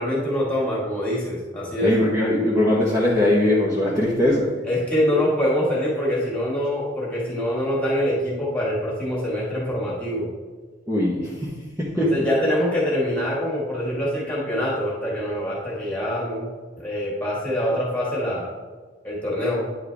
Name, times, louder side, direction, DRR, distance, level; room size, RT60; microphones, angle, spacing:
voice 1, 0.0-2.0 4.6-10.3 11.9-16.5 16.8-18.5 19.0-19.7, equal, 5° left, -5 dB, 2.1 m, -24 dB
voice 2, 1.8-4.5 10.9-11.5 11.8-12.3, left 1 dB, 15° right, -7 dB, 1.0 m, -20 dB
9.7 x 4.5 x 3.4 m, 1.4 s
head